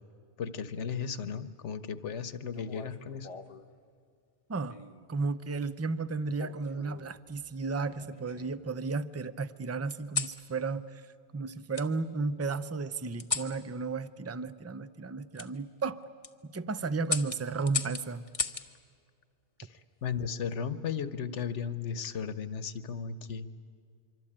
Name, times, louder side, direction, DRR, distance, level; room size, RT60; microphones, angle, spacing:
voice 1, 0.4-3.3 19.6-23.5, left 6 dB, 75° left, 12 dB, 1.3 m, -35 dB
sound 1, 2.5-3.7 4.7-5.1 6.4-7.1 7.8-8.7 9.9-10.4 11.7-11.9 13.2-13.6 15.3-15.5 16.0-16.3 17.0-18.7 20.2-20.6, left 5 dB, 30° left, 0.9 m, -37 dB
voice 2, 5.1-10.9 11.3-16.0 16.4-18.2, right 4 dB, 20° right, 14 dB, 0.4 m, -33 dB
25.0 x 24.5 x 8.8 m, 2.2 s
omnidirectional pair, 1.2 m